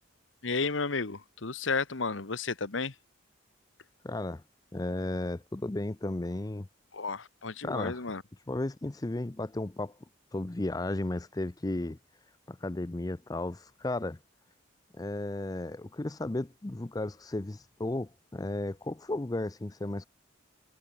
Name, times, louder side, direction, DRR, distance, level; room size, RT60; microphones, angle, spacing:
voice 1, 0.4-2.9 6.9-8.2, left 4 dB, 75° left, 1.4 m, -32 dB
voice 2, 4.0-4.4 4.7-6.7 7.6-8.0 8.5-10.0 10.3-12.0 12.5-14.2 14.9-20.1, left 2 dB, 20° left, 0.5 m, -34 dB
head